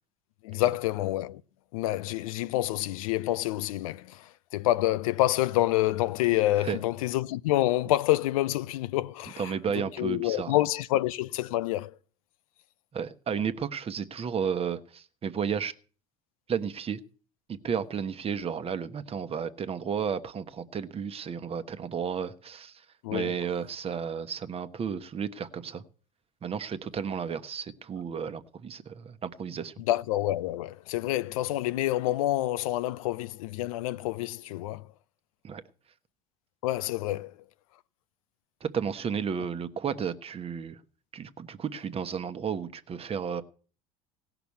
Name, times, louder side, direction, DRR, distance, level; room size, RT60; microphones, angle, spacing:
voice 1, 0.4-1.4 1.7-9.5 10.0-11.9 23.0-23.3 29.9-34.9 36.6-37.4, left 15 dB, 85° left, 0.5 m, -27 dB
voice 2, 9.4-10.5 12.9-15.7 16.5-17.0 17.5-22.8 23.1-25.8 26.4-29.7 35.4-35.6 38.6-40.8 41.1-43.4, right 7 dB, 35° right, 1.1 m, -33 dB
16.5 x 6.0 x 8.4 m
supercardioid pair, 85°, 17 cm